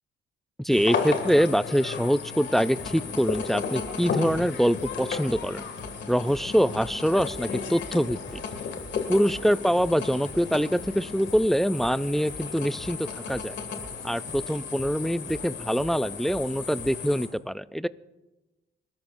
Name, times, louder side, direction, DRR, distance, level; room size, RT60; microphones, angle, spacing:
voice 1, 0.6-5.6 6.1-8.2 9.1-13.0 13.3-13.5 14.0-17.9, equal, ahead, 16 dB, 0.4 m, -24 dB
sound 1, 0.7-17.3, left 6 dB, 65° left, 2.3 m, -35 dB
sound 2, 2.4-17.2, right 2 dB, 20° right, 3.0 m, -47 dB
26.0 x 13.0 x 2.6 m, 1.1 s
cardioid pair, 90°, 20 cm